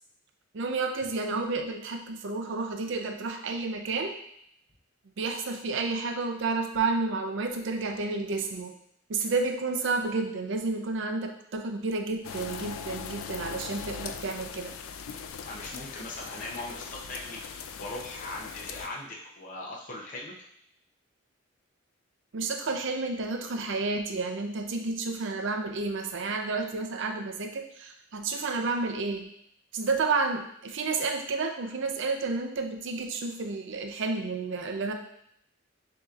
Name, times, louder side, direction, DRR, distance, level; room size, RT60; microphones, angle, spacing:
voice 1, 0.5-4.1 5.2-8.7 9.1-14.8 22.3-29.3 29.7-34.9, right 3 dB, 60° right, 5 dB, 0.5 m, -31 dB
sound 1, 12.2-18.9, left 6 dB, 85° left, 0.4 m, -40 dB
voice 2, 15.4-20.3, left 2 dB, 40° left, -3 dB, 0.7 m, -40 dB
6.8 x 2.8 x 2.4 m, 0.72 s
head